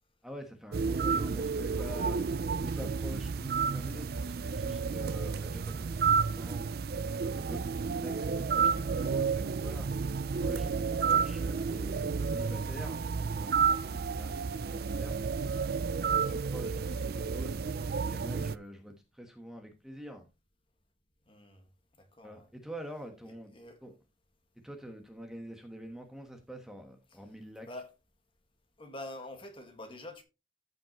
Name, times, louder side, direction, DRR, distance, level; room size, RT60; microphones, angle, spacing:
voice 1, 0.2-7.6 8.0-10.1 10.4-14.4 14.7-15.3 16.2-17.6 18.1-20.2 22.2-23.5 23.8-23.9 24.6-27.7, equal, 5° right, 1.2 m, -46 dB
sound 1, 0.7-18.6, right 5 dB, 55° right, 0.4 m, -31 dB
voice 2, 21.3-21.6 22.0-22.5 23.3-23.8 27.1-27.2 27.6-27.9 28.8-30.2, left 1 dB, 30° left, 1.7 m, -46 dB
14.5 x 5.3 x 3.0 m
head